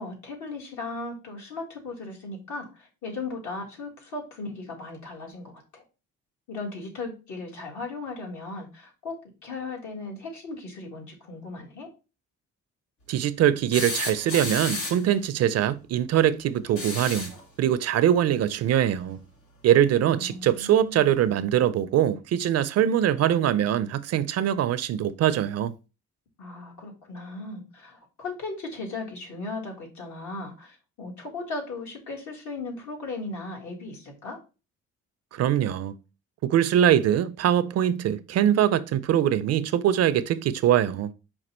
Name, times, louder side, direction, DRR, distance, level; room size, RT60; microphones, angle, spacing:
voice 1, 0.0-5.8 6.5-11.9 20.0-21.2 26.4-34.4, left 3 dB, 70° left, 1.9 m, -37 dB
voice 2, 13.1-17.3 17.6-19.2 19.6-25.7 35.3-36.0 36.4-41.1, right 10 dB, 55° right, 0.4 m, -23 dB
sound 1, 13.7-15.1 16.7-17.4 19.1-19.2 20.7-20.8, left 2 dB, 90° left, 1.9 m, -32 dB
5.2 x 2.4 x 4.2 m
cardioid pair, 90°, 30 cm